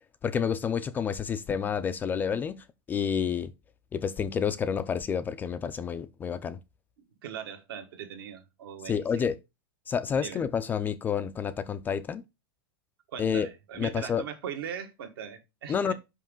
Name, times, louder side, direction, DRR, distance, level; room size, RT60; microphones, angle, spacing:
voice 1, 0.2-3.5 3.9-6.6 8.8-9.4 9.9-12.2 13.2-13.5 13.8-14.2 15.7-15.9, left 7 dB, 15° left, 0.3 m, -29 dB
voice 2, 7.2-9.3 10.2-10.4 13.1-15.9, right 8 dB, 70° right, 1.4 m, -40 dB
5.4 x 5.2 x 3.7 m
supercardioid pair, 155°, 13 cm